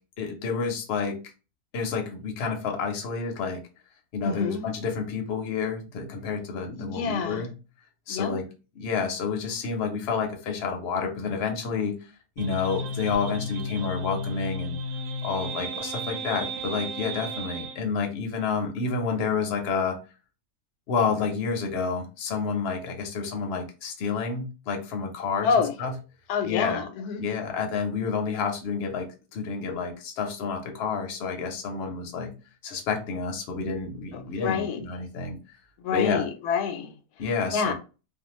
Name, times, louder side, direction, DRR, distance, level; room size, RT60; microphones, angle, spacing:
voice 1, 0.2-1.2 1.7-3.6 4.1-7.5 8.1-8.4 8.8-11.9 12.4-14.8 15.2-20.0 20.9-25.5 25.8-25.9 26.4-26.8 27.2-32.3 32.6-35.4 35.9-36.2 37.2-37.7, left 5 dB, 55° left, 0.8 m, -29 dB
voice 2, 4.2-4.7 6.7-7.5 8.1-8.4 25.4-25.7 26.3-27.2 34.1-34.8 35.8-36.9 37.5-37.7, left 6 dB, 90° left, 1.1 m, -27 dB
sound 1, 12.4-17.8, equal, 85° right, 1.1 m, -33 dB
2.5 x 2.3 x 3.0 m
omnidirectional pair, 1.6 m